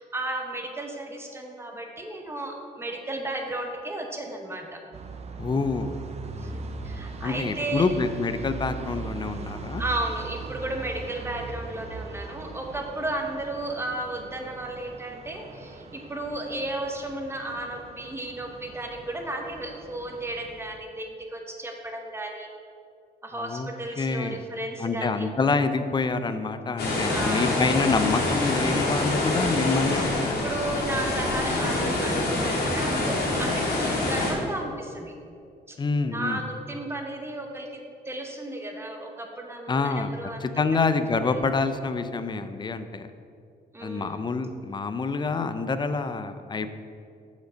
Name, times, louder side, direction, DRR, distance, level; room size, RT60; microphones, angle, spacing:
voice 1, 0.0-4.8 6.4-7.9 9.8-22.5 23.2-25.3 26.8-27.7 30.2-35.1 35.7-35.8 36.1-40.5 41.2-41.4 43.7-44.3, right 1 dB, 15° right, 2 dB, 1.0 m, -34 dB
sound 1, 4.9-20.8, right 4 dB, 40° right, 0.6 m, -40 dB
voice 2, 5.4-6.0 7.2-9.8 23.4-23.7 24.0-24.4 24.8-30.5 35.8-36.4 39.7-40.1 40.4-43.1 43.8-46.7, left 4 dB, 25° left, 10 dB, 0.5 m, -27 dB
sound 2, 26.8-34.3, left 2 dB, 75° left, 1.9 m, -26 dB
6.5 x 5.2 x 6.2 m, 2.4 s
cardioid pair, 110°, 17 cm